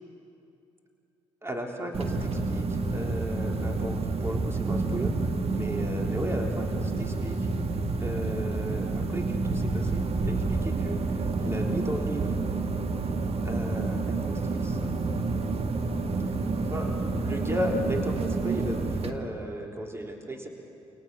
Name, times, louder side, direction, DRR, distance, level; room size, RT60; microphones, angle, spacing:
voice 1, 1.4-5.1 5.5-7.4 7.7-11.0 11.4-12.3 13.4-14.9 16.7-20.5, equal, 15° right, 2 dB, 3.6 m, -35 dB
sound 1, 1.9-19.1, right 3 dB, 40° right, 1.8 m, -29 dB
29.0 x 26.5 x 6.4 m, 2.6 s
figure-of-eight pair, 40°, 15 cm